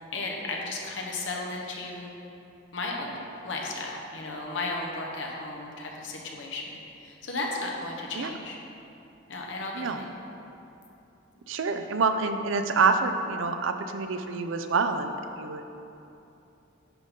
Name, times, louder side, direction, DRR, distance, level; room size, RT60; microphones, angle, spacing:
voice 1, 0.1-2.1 2.7-8.6 9.3-10.1, left 2 dB, 65° left, -1 dB, 1.1 m, -34 dB
voice 2, 11.5-15.6, right 4 dB, 75° right, 7 dB, 0.5 m, -27 dB
10.5 x 3.8 x 5.4 m, 2.8 s
head